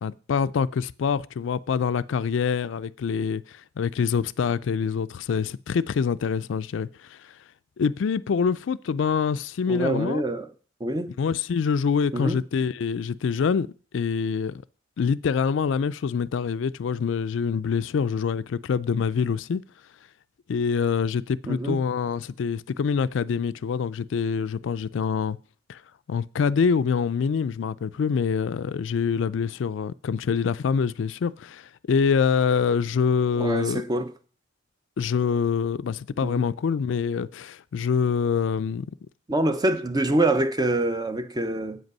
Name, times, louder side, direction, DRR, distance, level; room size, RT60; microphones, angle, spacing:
voice 1, 0.0-7.4 7.8-10.2 11.2-13.7 13.9-14.5 15.0-19.6 20.5-25.4 25.7-25.8 26.1-33.8 35.0-38.9, left 6 dB, 70° left, 0.4 m, -25 dB
voice 2, 9.7-10.5 10.8-11.1 12.1-12.4 21.4-21.8 33.4-34.1 36.2-36.5 39.3-41.8, right 2 dB, 20° right, 0.6 m, -25 dB
8.0 x 8.0 x 5.3 m
head